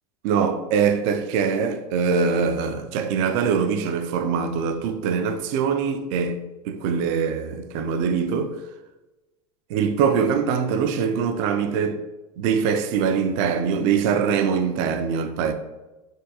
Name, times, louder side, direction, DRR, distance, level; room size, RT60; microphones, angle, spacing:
voice 1, 0.2-6.4 6.7-8.6 9.7-12.0 12.4-15.5, right 6 dB, 55° right, 0.4 m, -23 dB
3.5 x 2.2 x 2.7 m
hypercardioid pair, 100°, 19 cm